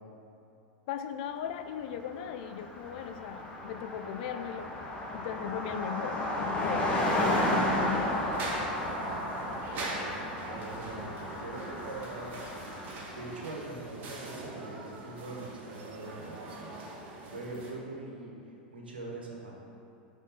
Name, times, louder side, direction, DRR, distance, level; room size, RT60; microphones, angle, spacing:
voice 1, 0.9-4.8 5.1-8.2, left 9 dB, 60° left, 8 dB, 0.4 m, -38 dB
Car passing by, 2.0-2.1 2.3-13.3, left 1 dB, 20° left, 1.3 m, -33 dB
sound 1, 6.6-17.7, right 2 dB, 40° right, 1.5 m, -42 dB
voice 2, 10.4-17.0 17.3-18.3 18.7-19.5, right 2 dB, 85° right, -1 dB, 1.2 m, -42 dB
5.8 x 4.3 x 5.5 m, 2.7 s
hypercardioid pair, 95°, 5 cm